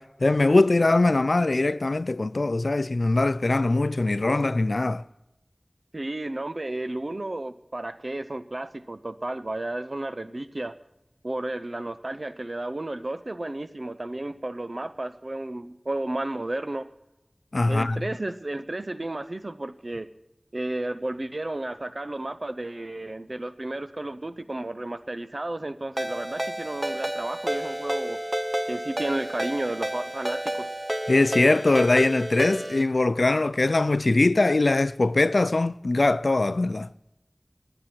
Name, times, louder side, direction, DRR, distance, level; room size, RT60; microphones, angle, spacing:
voice 1, 0.0-5.0 17.5-18.0 31.1-36.9, left 2 dB, 85° left, 0.3 m, -22 dB
voice 2, 5.9-10.7 11.2-16.9 17.7-20.1 20.5-28.2 28.7-30.7, right 1 dB, 60° right, 0.7 m, -32 dB
Ringtone, 26.0-32.8, right 1 dB, 30° right, 0.8 m, -30 dB
22.0 x 8.9 x 4.4 m
wide cardioid pair, 50°, 0 cm